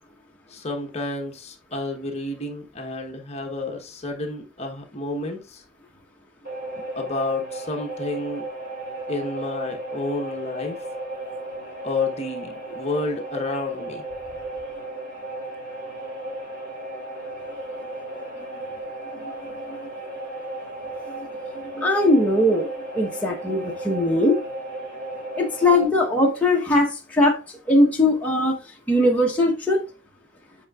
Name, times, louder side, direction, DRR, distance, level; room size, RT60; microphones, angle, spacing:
voice 1, 0.5-5.6 7.0-8.4 9.1-10.8 11.8-14.0, left 2 dB, 30° left, 1.0 m, -30 dB
sound 1, 6.4-25.8, right 2 dB, 45° right, 2.7 m, -35 dB
voice 2, 21.7-22.7 22.9-24.4 25.4-27.4 27.7-28.6 28.9-29.8, left 1 dB, 5° left, 0.9 m, -20 dB
8.4 x 5.0 x 2.3 m
head